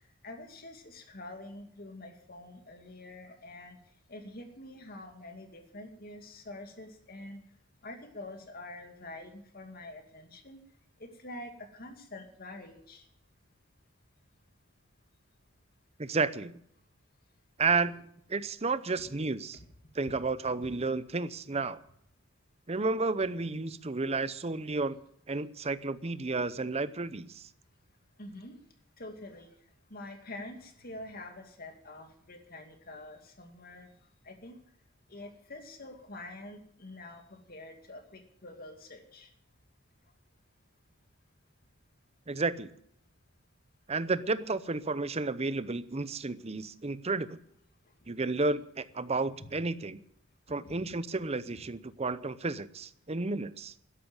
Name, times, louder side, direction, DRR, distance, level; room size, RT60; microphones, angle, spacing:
voice 1, 0.2-3.8 4.1-7.4 7.8-10.6 11.0-13.0 19.0-19.1 28.2-28.5 29.0-29.5 29.9-33.9 34.3-34.5 35.1-39.3 49.4-49.5 50.6-50.8, left 2 dB, 45° left, 5 dB, 2.4 m, -46 dB
voice 2, 16.0-16.6 17.6-19.6 19.9-21.8 22.7-25.0 25.3-27.5 42.3-42.7 43.9-47.4 48.1-50.0 50.5-53.7, right 3 dB, 30° right, 15 dB, 0.7 m, -32 dB
12.5 x 11.0 x 8.9 m, 0.70 s
head